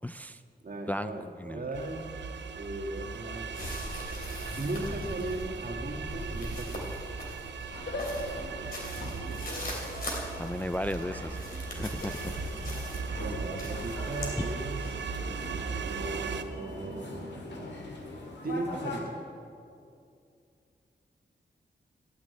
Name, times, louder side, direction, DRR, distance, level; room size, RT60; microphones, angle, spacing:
voice 1, 0.0-0.4 0.9-1.1 1.4-1.7 7.7-7.8 10.4-11.4 11.8-12.3, left 1 dB, 10° left, 11 dB, 0.3 m, -34 dB
voice 2, 0.6-2.1 2.5-3.6 4.6-6.9 12.3-12.8 13.2-15.0 15.8-17.3 18.4-19.2, right 2 dB, 55° right, 3 dB, 1.6 m, -37 dB
sound 1, 1.7-16.4, right 5 dB, 85° right, 0.6 m, -38 dB
sound 2, 3.5-14.3, left 1 dB, 55° left, 2.8 m, -41 dB
sound 3, 7.7-19.0, left 2 dB, 85° left, 2.0 m, -41 dB
14.0 x 6.1 x 9.2 m, 2.5 s
wide cardioid pair, 75°, 18 cm